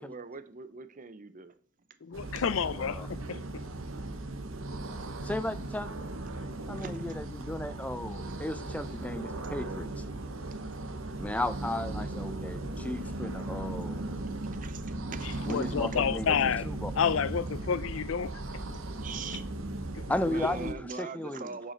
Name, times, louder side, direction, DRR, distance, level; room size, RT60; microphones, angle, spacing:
voice 1, 0.0-1.6 6.7-7.2 14.6-16.0 17.3-17.4 19.0-19.4 20.2-21.7, right 4 dB, 40° right, 0.7 m, -42 dB
voice 2, 2.0-3.4 15.5-16.7 17.0-18.4 19.9-20.0, left 7 dB, 75° left, 0.5 m, -29 dB
sound 1, 2.1-20.7, right 2 dB, 90° right, 1.0 m, -37 dB
voice 3, 5.2-5.9 6.4-9.9 11.2-14.0 15.4-16.9 20.1-21.5, left 1 dB, 5° left, 0.5 m, -35 dB
9.8 x 5.5 x 4.4 m
head